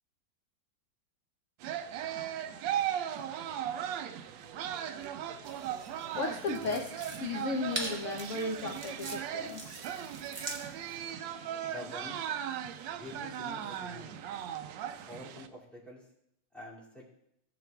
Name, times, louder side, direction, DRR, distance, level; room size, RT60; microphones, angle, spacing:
sound 1, 1.6-15.5, right 10 dB, 85° right, 1.3 m, -37 dB
sound 2, 5.4-11.1, right 2 dB, 30° right, 0.8 m, -43 dB
voice 1, 6.1-9.8, left 3 dB, 70° left, 3 dB, 0.7 m, -35 dB
voice 2, 11.6-12.2 12.9-14.2 15.1-16.0 16.5-17.0, left 1 dB, ahead, -6 dB, 2.3 m, -46 dB
14.5 x 7.7 x 2.3 m, 0.77 s
omnidirectional pair, 2.0 m